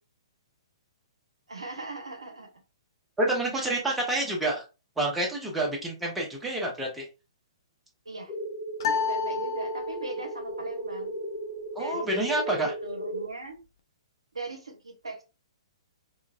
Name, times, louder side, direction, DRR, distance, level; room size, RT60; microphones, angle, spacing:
voice 1, 1.5-2.6 3.6-3.7 8.1-8.3 8.8-11.2 11.8-12.6 12.8-13.6 14.3-15.2, right 2 dB, 80° right, 4 dB, 0.6 m, -40 dB
voice 2, 3.2-4.6 5.0-7.1 11.7-12.7, right 1 dB, 5° right, -2 dB, 0.8 m, -28 dB
sound 1, 8.3-13.3, right 1 dB, 25° left, 1.1 m, -35 dB
sound 2, 8.8-10.3, left 7 dB, 50° left, 0.5 m, -30 dB
2.9 x 2.3 x 2.4 m, 0.29 s
figure-of-eight pair, 120°, 3 cm